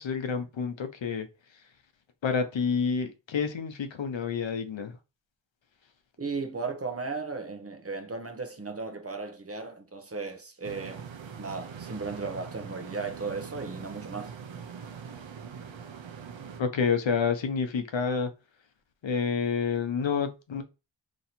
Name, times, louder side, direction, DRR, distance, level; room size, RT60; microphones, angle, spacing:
voice 1, 0.0-1.6 2.2-5.0 16.6-18.3 19.0-20.6, left 6 dB, 75° left, 0.8 m, -29 dB
voice 2, 6.2-11.1 11.4-14.3, right 4 dB, 30° right, 0.7 m, -36 dB
sound 1, 10.6-16.6, right 7 dB, 80° right, 0.7 m, -42 dB
3.1 x 2.7 x 4.2 m
wide cardioid pair, 80°, 45 cm